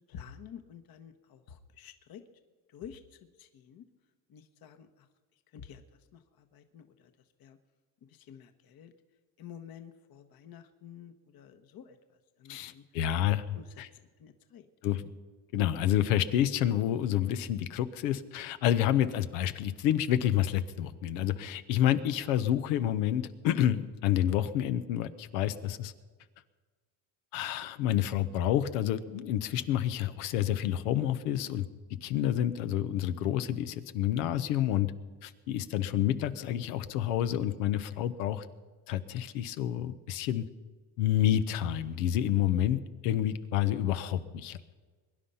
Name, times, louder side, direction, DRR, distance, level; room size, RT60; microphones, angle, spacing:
voice 1, 0.1-2.2 2.7-3.9 4.3-5.1 5.5-5.8 6.1-7.1 7.4-7.6 8.0-8.9 9.4-12.0 12.4-12.8 13.3-13.8 14.2-14.7, left 8 dB, 45° left, 8 dB, 1.3 m, -50 dB
voice 2, 12.5-13.9 14.8-15.1 15.5-25.9 27.3-31.7 32.0-34.9 35.2-38.5 38.9-40.4 41.0-44.6, left 11 dB, 85° left, 12 dB, 1.1 m, -29 dB
22.5 x 10.5 x 5.7 m, 1.4 s
supercardioid pair, 105°, 48 cm